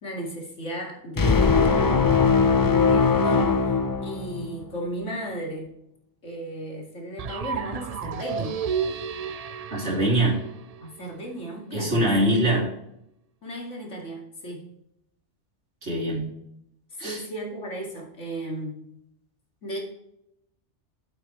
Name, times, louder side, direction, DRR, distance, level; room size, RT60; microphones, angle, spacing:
voice 1, 0.0-5.7 6.2-8.6 10.8-12.1 13.4-14.7 16.9-18.8 19.6-19.8, right 1 dB, 85° left, 0 dB, 2.7 m, -35 dB
sound 1, 1.2-4.6, left 5 dB, 35° left, 0.3 m, -20 dB
sound 2, 7.2-11.1, right 7 dB, 85° right, 0.3 m, -32 dB
voice 2, 9.7-10.4 11.7-12.7 15.8-16.3 17.0-17.2, right 1 dB, 65° right, -4 dB, 3.3 m, -23 dB
9.2 x 8.0 x 3.2 m, 0.78 s
omnidirectional pair, 1.2 m